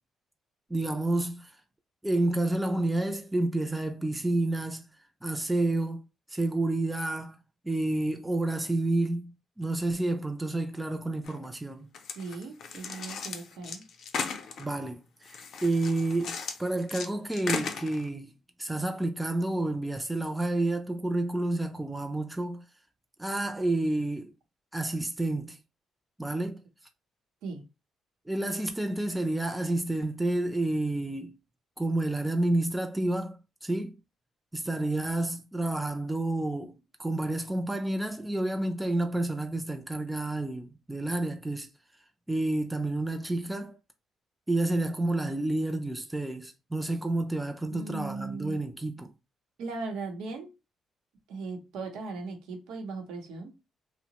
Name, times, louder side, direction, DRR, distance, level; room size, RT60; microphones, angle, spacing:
voice 1, 0.7-1.6 2.0-4.9 5.2-7.4 7.6-9.3 9.6-11.9 14.6-18.3 18.6-22.6 23.2-24.3 24.7-25.6 26.2-26.6 28.3-31.3 31.8-34.0 34.5-36.7 37.0-41.7 42.3-43.8 44.5-49.1, right 2 dB, 10° right, 0.3 m, -29 dB
sound 1, 11.2-11.4 11.9-14.7 15.2-17.1 17.3-18.1, left 5 dB, 65° left, 0.5 m, -36 dB
voice 2, 12.1-13.8 27.4-27.6 47.7-48.6 49.6-50.5 51.3-53.5, right 3 dB, 90° right, 0.7 m, -38 dB
2.8 x 2.0 x 2.9 m
cardioid pair, 90°, 0 cm